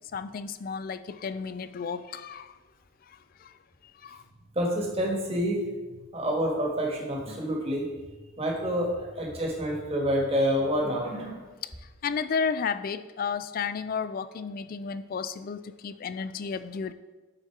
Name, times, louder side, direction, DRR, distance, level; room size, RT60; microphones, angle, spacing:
voice 1, 0.1-2.5 4.0-4.2 12.0-16.9, left 6 dB, 45° left, 14 dB, 0.3 m, -32 dB
voice 2, 4.5-5.6 5.9-7.9 8.4-11.4, equal, 30° right, -1 dB, 1.4 m, -28 dB
8.8 x 4.4 x 4.6 m, 1.2 s
head